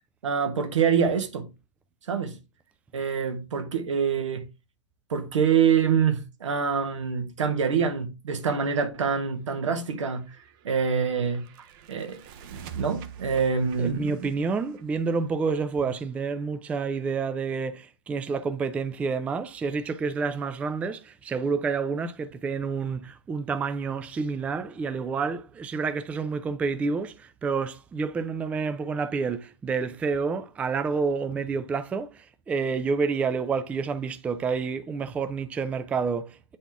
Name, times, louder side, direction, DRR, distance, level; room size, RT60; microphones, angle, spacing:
voice 1, 0.2-1.5 2.1-2.4 2.9-4.4 5.1-10.2 10.6-11.4 11.9-12.2 12.5-14.3, right 6 dB, 80° right, 1.5 m, -25 dB
sound 1, 10.2-15.9, right 6 dB, 45° right, 0.9 m, -44 dB
voice 2, 13.8-36.6, right 5 dB, 10° right, 0.3 m, -29 dB
7.8 x 4.2 x 3.5 m
hypercardioid pair, 135°, 16 cm